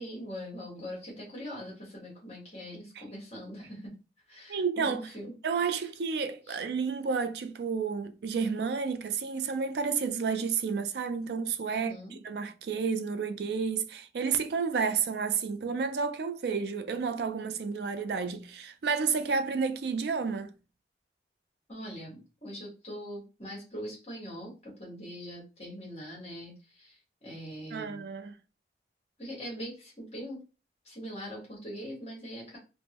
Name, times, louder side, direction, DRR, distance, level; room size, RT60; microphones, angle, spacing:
voice 1, 0.0-3.9 4.3-5.3 5.7-5.9 6.4-6.6 11.7-12.1 21.7-28.0 29.2-30.4 30.8-32.6, equal, 35° left, 1.1 m, -42 dB
voice 2, 4.5-5.0 5.4-11.9 12.2-20.5 27.7-28.3, right 5 dB, 70° right, 0.4 m, -31 dB
3.5 x 2.1 x 2.8 m
head